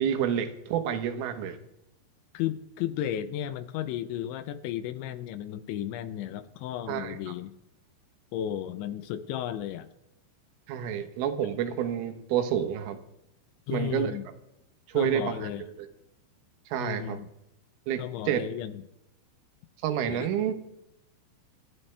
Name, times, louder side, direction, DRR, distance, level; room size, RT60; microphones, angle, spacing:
voice 1, 0.0-1.6 6.9-7.2 10.7-13.0 13.7-14.1 14.9-15.9 16.7-17.2 17.9-18.5 19.8-20.5, right 9 dB, 85° right, 7 dB, 3.9 m, -29 dB
voice 2, 2.3-7.6 8.3-9.9 13.7-14.2 14.9-15.6 16.8-17.3 18.0-18.8 20.1-20.3, left 11 dB, 80° left, 11 dB, 2.9 m, -34 dB
27.5 x 9.8 x 3.4 m, 0.85 s
omnidirectional pair, 5.6 m